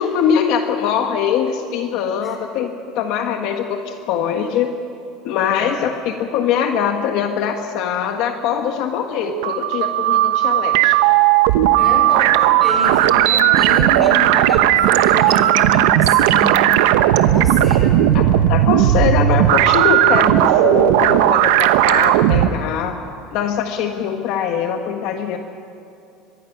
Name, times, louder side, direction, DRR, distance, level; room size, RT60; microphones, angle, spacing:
voice 1, 0.0-4.7 5.2-11.0 18.1-23.0 23.3-25.4, left 8 dB, 50° left, 5 dB, 1.3 m, -22 dB
sound 1, 9.2-22.5, right 13 dB, 80° right, 0.9 m, -15 dB
voice 2, 11.8-16.6 17.0-17.9, right 1 dB, ahead, 0 dB, 3.7 m, -28 dB
23.5 x 21.0 x 5.9 m, 2.7 s
cardioid pair, 175°, 0 cm